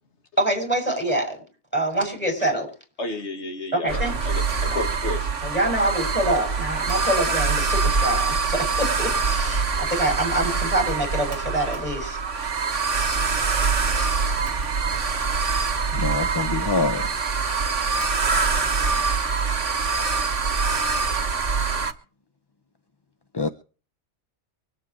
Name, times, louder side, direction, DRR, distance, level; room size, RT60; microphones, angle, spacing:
voice 1, 0.4-1.4 1.7-2.7 3.7-4.2 5.4-12.5, right 1 dB, 10° left, 6.7 m, -25 dB
voice 2, 3.0-5.3, left 2 dB, 70° left, 2.2 m, -32 dB
sound 1, 3.9-21.9, right 4 dB, 85° right, 1.8 m, -24 dB
voice 3, 15.9-17.0 23.3-23.5, left 3 dB, 25° left, 0.7 m, -25 dB
24.5 x 8.4 x 4.7 m
omnidirectional pair, 1.2 m